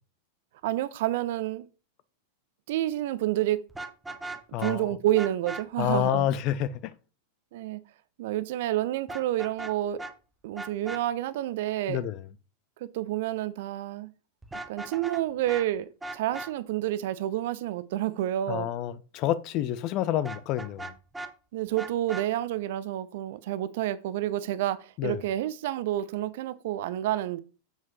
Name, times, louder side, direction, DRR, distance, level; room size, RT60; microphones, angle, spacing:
voice 1, 0.6-1.7 2.7-3.6 4.6-6.3 7.5-7.8 8.2-10.0 10.4-12.1 12.8-14.1 14.7-18.7 21.5-27.4, right 13 dB, 55° right, 0.7 m, -29 dB
Vehicle horn car horn honking, 3.7-4.8 5.2-5.6 9.1-9.7 10.0-10.1 10.6-11.0 14.4-15.2 15.5-15.6 16.0-16.5 20.2-21.3 21.8-22.3, right 2 dB, 10° right, 0.9 m, -38 dB
voice 2, 4.5-5.0 5.8-6.9 11.9-12.2 18.5-20.9 25.0-25.2, left 12 dB, 40° left, 0.6 m, -28 dB
7.6 x 7.4 x 3.0 m
figure-of-eight pair, 90°, 0 cm